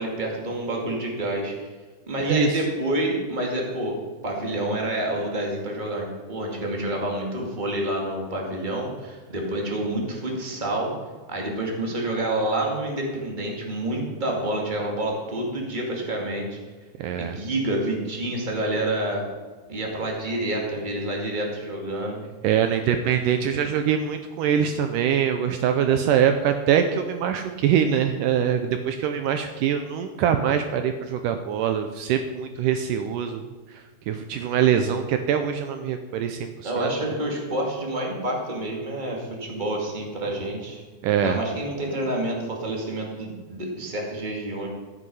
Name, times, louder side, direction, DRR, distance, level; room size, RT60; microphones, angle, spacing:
voice 1, 0.0-1.7 2.1-4.0 4.2-10.9 11.3-16.6 17.2-19.2 19.7-22.2 36.6-40.8 41.2-44.7, right 1 dB, 20° right, 0 dB, 1.4 m, -28 dB
voice 2, 2.2-2.6 17.0-17.4 22.4-36.9 41.0-41.4, right 8 dB, 90° right, 7 dB, 1.8 m, -23 dB
14.5 x 8.2 x 5.5 m, 1.4 s
omnidirectional pair, 4.6 m